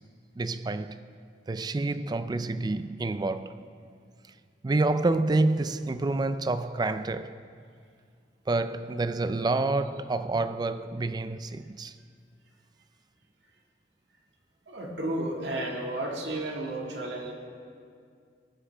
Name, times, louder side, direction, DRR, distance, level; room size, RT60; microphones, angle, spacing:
voice 1, 0.4-1.0 1.5-3.7 4.6-7.4 8.5-12.0, right 2 dB, 25° right, 0.4 m, -28 dB
voice 2, 14.7-17.3, right 1 dB, 90° right, 1.9 m, -32 dB
19.0 x 9.8 x 3.4 m
head